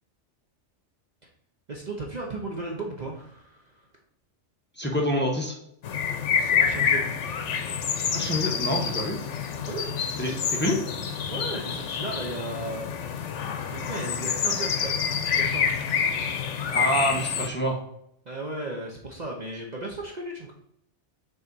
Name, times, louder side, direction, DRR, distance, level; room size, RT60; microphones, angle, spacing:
voice 1, 1.7-3.9 6.3-7.0 9.7-10.1 10.4-10.6 11.3-15.9 18.2-20.5, right 2 dB, 40° right, -1 dB, 0.9 m, -36 dB
voice 2, 4.8-5.6 8.1-9.2 10.2-10.8 16.7-17.8, equal, 10° left, -1 dB, 1.2 m, -26 dB
sound 1, 5.8-17.5, left 7 dB, 75° left, 1.1 m, -27 dB
6.3 x 4.1 x 4.0 m, 0.75 s
omnidirectional pair, 1.2 m